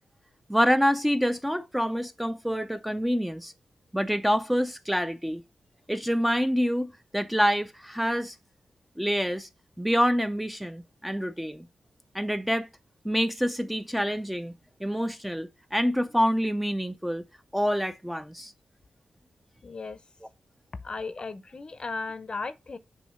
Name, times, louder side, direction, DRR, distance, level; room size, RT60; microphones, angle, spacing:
voice 1, 0.5-3.5 3.9-5.4 5.9-8.4 9.0-9.5 9.8-11.7 12.1-12.7 13.0-14.5 14.8-17.2 17.5-18.5, equal, 5° right, 0.5 m, -26 dB
voice 2, 19.6-20.0 20.8-22.8, left 4 dB, 40° left, 0.6 m, -36 dB
7.2 x 2.7 x 5.6 m
cardioid pair, 80°, 2 cm